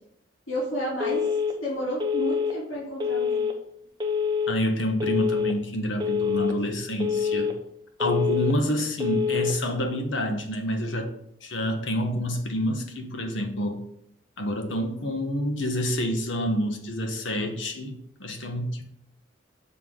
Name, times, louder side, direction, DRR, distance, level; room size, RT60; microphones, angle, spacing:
voice 1, 0.5-1.3 1.5-3.4, equal, 85° left, -8 dB, 2.7 m, -31 dB
Telephone, 1.0-1.5 2.0-2.5 3.0-3.5 4.0-4.5 5.0-5.5 6.0-6.5 7.0-7.5 8.0-8.5 9.0-9.5, left 6 dB, 20° right, 0.7 m, -26 dB
voice 2, 4.5-7.5 8.0-11.1 11.4-13.8 14.4-18.8, equal, 70° left, 4 dB, 1.2 m, -28 dB
5.8 x 4.0 x 6.0 m, 0.74 s
head